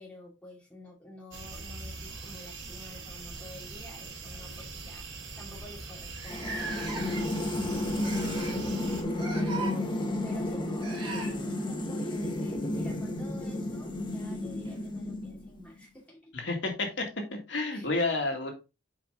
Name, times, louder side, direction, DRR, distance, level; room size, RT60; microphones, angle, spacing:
voice 1, 0.0-8.5 9.2-16.3 17.7-18.0, left 1 dB, 5° left, -2 dB, 2.4 m, -50 dB
sound 1, 1.3-9.0, right 3 dB, 75° right, 2.2 m, -42 dB
sound 2, 2.1-2.6 3.7-3.8 4.2-4.4 5.1-5.2 5.4-5.5 6.1-7.5 8.0-8.6 9.1-9.7 10.8-11.3 13.5-13.6 14.6-14.7, right 3 dB, 25° right, 2.3 m, -39 dB
sound 3, 6.3-15.6, left 1 dB, 25° left, 1.2 m, -32 dB
voice 2, 16.3-17.1 17.5-18.5, left 2 dB, 70° left, 2 dB, 2.0 m, -30 dB
7.6 x 5.3 x 3.7 m, 0.27 s
head